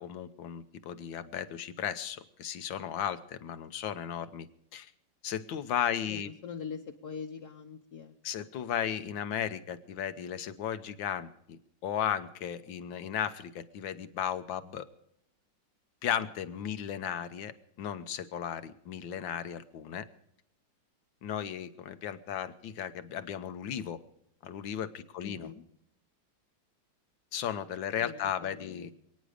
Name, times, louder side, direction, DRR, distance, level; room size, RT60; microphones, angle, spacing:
voice 1, 0.0-4.5 4.7-4.9 5.2-6.3 8.2-14.8 16.0-17.5 17.8-20.0 21.2-24.0 24.4-25.5 27.3-28.9, left 9 dB, 85° left, 11 dB, 1.7 m, -35 dB
voice 2, 6.1-8.5 25.2-25.6 28.0-28.9, left 6 dB, 60° left, 2 dB, 1.4 m, -43 dB
27.0 x 9.6 x 5.0 m, 0.76 s
omnidirectional pair, 2.0 m